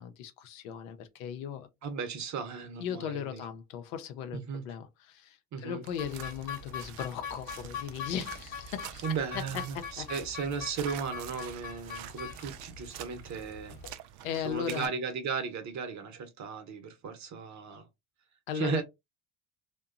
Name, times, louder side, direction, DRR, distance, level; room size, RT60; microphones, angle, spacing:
voice 1, 0.0-1.7 2.8-9.0 9.3-10.1 14.2-14.9 18.5-18.8, left 8 dB, 80° left, 0.6 m, -37 dB
voice 2, 1.8-3.4 4.3-4.6 5.5-5.8 9.0-13.8 14.4-17.9 18.5-18.8, right 6 dB, 45° right, 0.8 m, -36 dB
sound 1, 5.8-14.9, right 11 dB, 60° right, 0.5 m, -48 dB
sound 2, 6.0-13.9, left 7 dB, 45° left, 0.8 m, -43 dB
2.7 x 2.2 x 2.4 m
hypercardioid pair, 65°, 41 cm